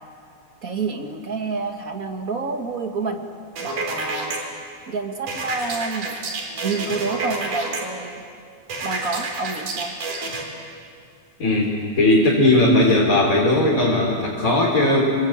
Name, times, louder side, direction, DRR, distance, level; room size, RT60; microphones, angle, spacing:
voice 1, 0.6-3.2 3.6-4.4 4.9-8.2 8.8-9.9, right 4 dB, 35° right, 4 dB, 1.7 m, -28 dB
sound 1, 3.6-4.4 5.3-7.8 8.7-10.4, right 3 dB, 90° right, 5.2 m, -29 dB
voice 2, 11.4-15.1, left 1 dB, 25° left, -4 dB, 3.7 m, -18 dB
29.5 x 22.0 x 8.8 m, 2.4 s
omnidirectional pair, 3.5 m